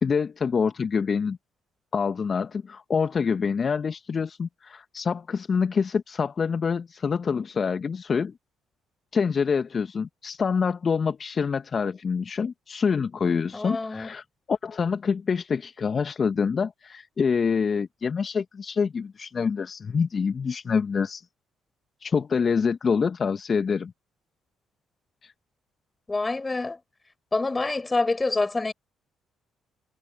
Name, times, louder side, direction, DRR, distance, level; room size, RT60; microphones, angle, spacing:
voice 1, 0.0-1.4 1.9-8.3 9.1-21.2 22.0-23.9 25.2-25.3, left 5 dB, 45° left, 1.5 m, -26 dB
voice 2, 13.5-14.1 26.1-26.8 27.3-28.7, left 3 dB, 25° left, 5.9 m, -26 dB
hypercardioid pair, 45°, 0 cm